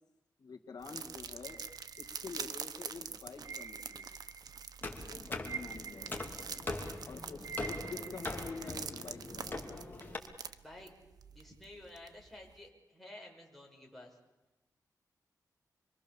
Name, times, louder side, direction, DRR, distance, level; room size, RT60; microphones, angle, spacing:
voice 1, 0.4-1.6 2.0-4.0 5.0-6.2 7.1-9.8, left 4 dB, 80° left, 3 dB, 2.1 m, -47 dB
sound 1, 0.8-12.5, right 6 dB, 70° right, 1.1 m, -46 dB
sound 2, 1.4-2.7 3.4-4.7 5.0-8.8, right 6 dB, 45° right, 1.8 m, -47 dB
sound 3, 4.8-10.2, left 2 dB, 30° left, 2.9 m, -42 dB
voice 2, 11.3-14.2, left 1 dB, ahead, -1 dB, 6.4 m, -52 dB
26.5 x 24.0 x 7.1 m, 1.0 s
wide cardioid pair, 135°, 7 cm